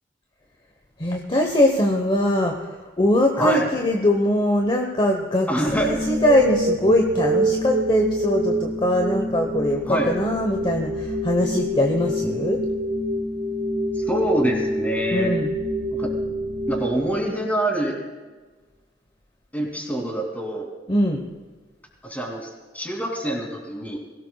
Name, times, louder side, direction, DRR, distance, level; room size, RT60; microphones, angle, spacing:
voice 1, 1.0-2.5 3.0-12.6 15.1-15.5 20.9-21.2, left 1 dB, 30° left, 2 dB, 1.0 m, -21 dB
voice 2, 3.4-3.7 5.5-6.1 9.9-10.1 14.1-15.3 16.0-16.1 16.7-18.0 19.5-20.7 22.0-22.5 22.7-24.0, right 1 dB, 10° left, 1 dB, 2.8 m, -25 dB
sound 1, 5.7-17.7, right 1 dB, 75° right, 1.1 m, -26 dB
21.5 x 17.0 x 2.3 m, 1.3 s
head